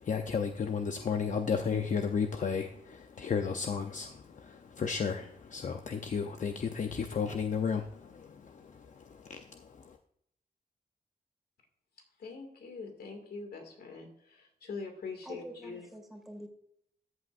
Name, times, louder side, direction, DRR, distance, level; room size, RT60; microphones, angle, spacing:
voice 1, 0.0-8.7 9.0-9.4, left 6 dB, 50° left, 6 dB, 0.6 m, -33 dB
voice 2, 12.2-15.9, left 4 dB, 85° left, 5 dB, 2.2 m, -43 dB
voice 3, 15.3-16.5, right 1 dB, ahead, 2 dB, 2.1 m, -46 dB
14.0 x 8.0 x 2.5 m, 0.72 s
wide cardioid pair, 120°, 16 cm